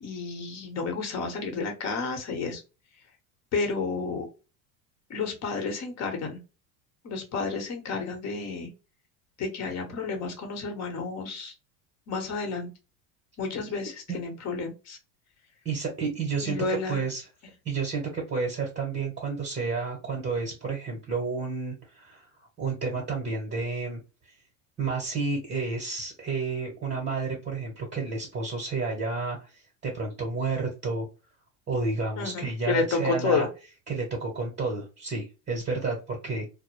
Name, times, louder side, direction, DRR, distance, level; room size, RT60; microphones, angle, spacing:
voice 1, 0.0-2.6 3.5-4.3 5.1-6.4 7.0-8.7 9.4-11.5 12.1-12.7 13.4-15.0 16.4-17.0 32.2-33.5, left 4 dB, 40° left, 4 dB, 1.0 m, -31 dB
voice 2, 15.6-17.2 17.6-22.3 22.6-24.0 24.8-31.1 31.7-33.5 33.9-36.5, right 4 dB, 25° right, 0 dB, 0.9 m, -31 dB
2.1 x 2.0 x 3.0 m, 0.30 s
supercardioid pair, 105°, 43 cm